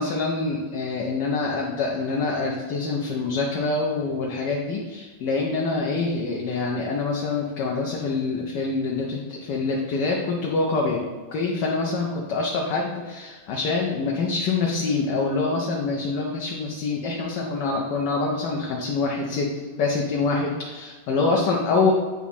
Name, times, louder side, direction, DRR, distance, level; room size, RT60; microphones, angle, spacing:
voice 1, 0.0-11.0 11.3-19.5 19.8-21.9, left 3 dB, 70° left, -1 dB, 1.1 m, -25 dB
8.1 x 2.9 x 4.1 m, 1.4 s
omnidirectional pair, 2.3 m